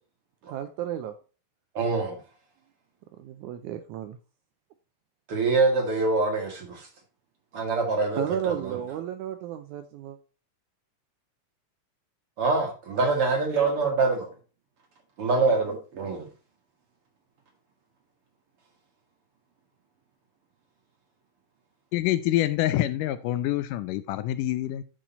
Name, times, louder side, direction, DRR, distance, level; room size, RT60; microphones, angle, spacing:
voice 1, 0.5-1.1 3.2-4.2 8.2-10.2, right 10 dB, 80° right, 1.8 m, -33 dB
voice 2, 1.8-2.2 5.3-6.9 7.5-8.8 12.4-14.3 15.2-16.3, right 3 dB, 50° right, 2.0 m, -25 dB
voice 3, 21.9-24.8, left 14 dB, 80° left, 2.0 m, -26 dB
10.0 x 4.9 x 4.1 m
omnidirectional pair, 3.9 m